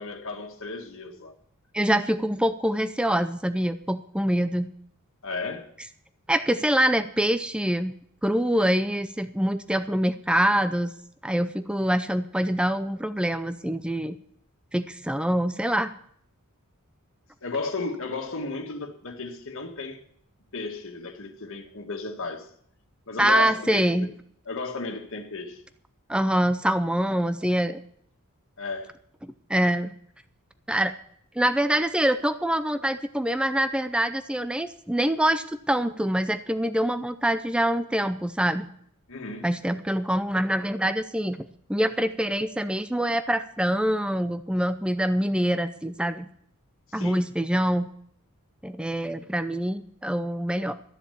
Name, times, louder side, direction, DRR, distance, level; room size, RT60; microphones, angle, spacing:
voice 1, 0.0-1.3 5.2-5.7 17.4-20.0 20.5-22.5 23.1-24.1 24.5-25.6 28.6-29.0 39.1-39.5 46.9-47.2, left 3 dB, 60° left, 1.9 m, -34 dB
voice 2, 1.7-4.7 6.3-7.9 8.2-10.9 11.2-14.2 14.7-15.9 23.2-24.1 26.1-27.8 29.2-29.9 30.7-30.9 31.4-38.7 39.4-46.3 46.9-47.9 48.6-50.7, right 1 dB, 5° right, 0.5 m, -25 dB
13.5 x 7.2 x 8.4 m
head